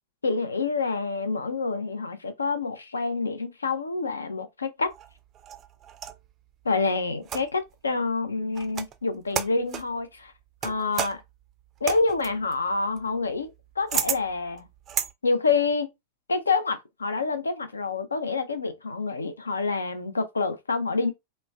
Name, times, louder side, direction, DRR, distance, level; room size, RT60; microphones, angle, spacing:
voice 1, 0.2-4.9 6.6-10.3 10.6-11.2 11.8-13.5 13.8-14.6 15.2-15.9 16.3-21.1, left 4 dB, 75° left, 0.4 m, -27 dB
sound 1, 4.9-6.3 7.2-7.7 8.5-9.0 9.3-9.9 10.6-15.1, right 8 dB, 30° right, 0.3 m, -33 dB
3.0 x 2.1 x 2.2 m
figure-of-eight pair, 90°, 0 cm